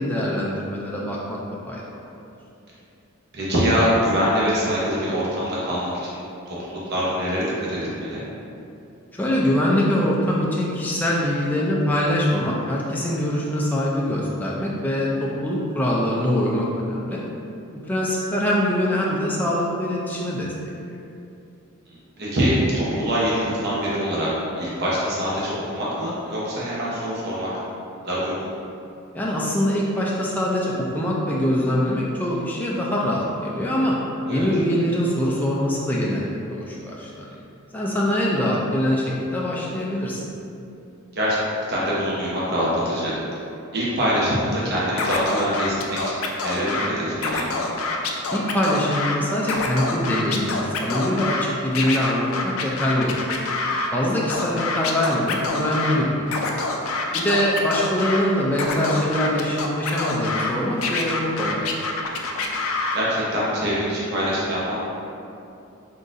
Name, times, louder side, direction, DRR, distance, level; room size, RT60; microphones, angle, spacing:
voice 1, 0.0-1.4 1.6-2.1 9.1-17.2 17.8-20.5 29.1-34.0 34.3-37.3 37.7-40.2 48.3-53.2 53.9-56.4 57.1-61.9, left 1 dB, 10° left, -5 dB, 0.3 m, -23 dB
voice 2, 3.3-6.2 6.5-8.2 22.2-24.3 24.6-27.5 28.0-28.5 34.3-34.5 41.1-41.4 41.7-43.1 43.7-46.0 46.4-47.5 62.9-64.9, equal, 50° right, -7 dB, 0.9 m, -24 dB
Scratching (performance technique), 45.0-46.9 47.2-49.2 49.4-51.4 51.7-53.9 54.3-56.0 56.3-58.2 58.5-60.5 60.8-63.0, left 3 dB, 75° left, 0.4 m, -26 dB
3.9 x 3.8 x 2.5 m, 2.7 s
head